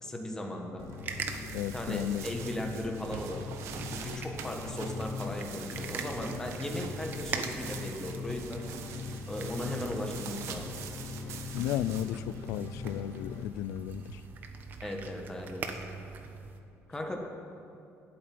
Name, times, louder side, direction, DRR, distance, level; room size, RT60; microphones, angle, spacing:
voice 1, 0.0-0.9 1.7-3.4 3.9-8.6 9.3-10.7 14.8-15.7 16.9-17.2, left 1 dB, 10° left, 2 dB, 1.5 m, -37 dB
sound 1, 0.8-13.5, left 6 dB, 50° left, 0.9 m, -42 dB
sound 2, 0.9-13.4, right 7 dB, 65° right, 1.2 m, -45 dB
sound 3, 1.0-16.6, right 5 dB, 40° right, 1.0 m, -43 dB
voice 2, 1.5-2.2 11.5-14.2, left 12 dB, 85° left, 18 dB, 0.4 m, -34 dB
12.0 x 8.6 x 9.5 m, 2.7 s
cardioid pair, 165°, 5 cm